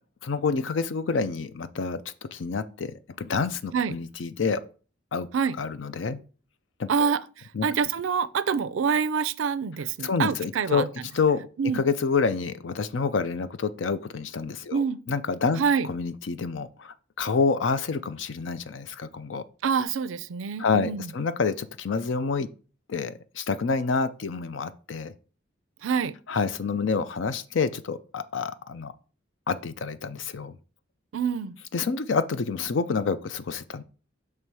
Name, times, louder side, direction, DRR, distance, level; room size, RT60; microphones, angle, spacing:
voice 1, 0.2-2.0 2.3-4.6 5.1-5.3 5.6-6.2 6.8-7.1 7.5-7.7 10.0-10.9 11.1-11.5 11.7-15.6 15.9-19.4 20.6-22.5 22.9-25.1 26.3-28.9 29.5-30.6 31.7-33.8, left 5 dB, 70° left, 0.5 m, -28 dB
voice 2, 6.9-7.2 7.6-11.1 11.6-11.8 14.7-15.0 15.5-15.9 19.6-21.1 25.8-26.2 31.1-31.6, right 6 dB, 85° right, 0.4 m, -26 dB
6.9 x 3.2 x 4.6 m
head